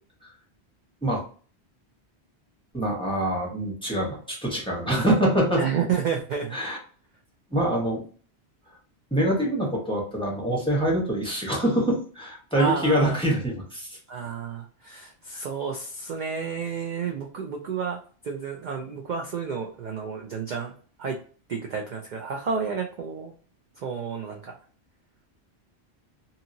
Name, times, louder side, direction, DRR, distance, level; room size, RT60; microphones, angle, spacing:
voice 1, 2.7-5.6 6.5-6.8 7.5-8.0 9.1-14.0, right 1 dB, 5° left, -3 dB, 0.9 m, -25 dB
voice 2, 5.6-6.6 12.6-13.2 14.1-18.0 18.2-20.7 21.0-21.2 21.5-23.3 23.8-24.6, right 6 dB, 55° right, 2 dB, 0.5 m, -30 dB
2.8 x 2.7 x 2.6 m, 0.41 s
omnidirectional pair, 1.1 m